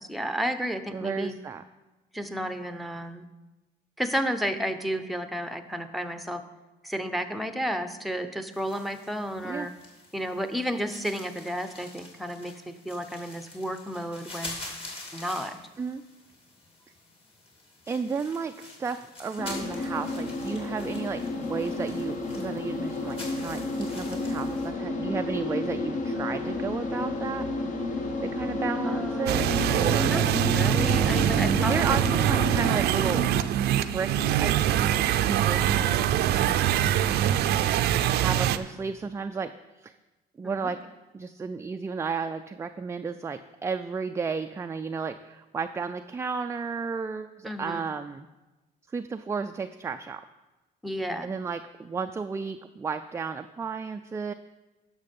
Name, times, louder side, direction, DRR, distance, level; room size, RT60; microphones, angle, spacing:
voice 1, 0.0-1.4 2.1-3.3 4.0-6.4 6.8-9.7 10.1-14.6 15.1-15.6 28.8-29.4 30.1-30.2 30.5-32.0 33.0-33.3 40.4-40.7 47.4-47.9 50.8-51.3, equal, ahead, 9 dB, 0.7 m, -32 dB
voice 2, 0.9-1.6 9.4-9.7 15.8-16.0 17.9-27.4 28.2-29.4 29.7-30.2 31.6-33.3 33.7-36.7 38.1-39.5 39.8-39.9 40.4-40.9 41.1-48.3 48.9-50.2 51.2-54.3, right 5 dB, 15° right, 7 dB, 0.3 m, -33 dB
sound 1, 8.5-24.7, left 2 dB, 35° left, 2.5 m, -46 dB
sound 2, 19.4-32.7, left 2 dB, 50° left, 1.3 m, -31 dB
sound 3, 29.3-38.6, right 11 dB, 75° right, 0.5 m, -24 dB
10.5 x 6.5 x 5.3 m, 1.1 s
cardioid pair, 110°, 17 cm